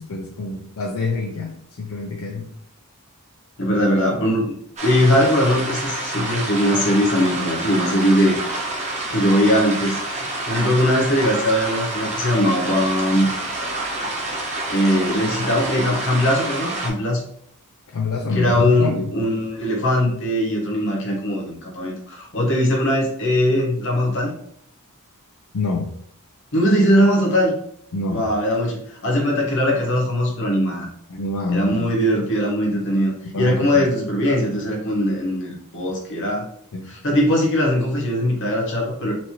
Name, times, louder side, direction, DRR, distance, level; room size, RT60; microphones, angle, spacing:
voice 1, 0.0-2.5 17.9-19.1 25.5-25.9 27.9-28.2 31.1-31.9 33.2-33.9 36.7-36.9, left 3 dB, 70° left, 0 dB, 0.5 m, -26 dB
voice 2, 3.6-4.5 4.8-8.4 9.1-10.0 10.5-13.3 14.1-14.4 14.7-17.2 18.3-24.3 26.5-27.5 28.0-30.9 31.5-33.1 33.4-36.5 36.9-39.1, equal, 55° left, -1 dB, 1.2 m, -20 dB
sound 1, 4.8-16.9, right 2 dB, 30° right, 0.9 m, -28 dB
4.3 x 2.7 x 3.0 m, 0.67 s
head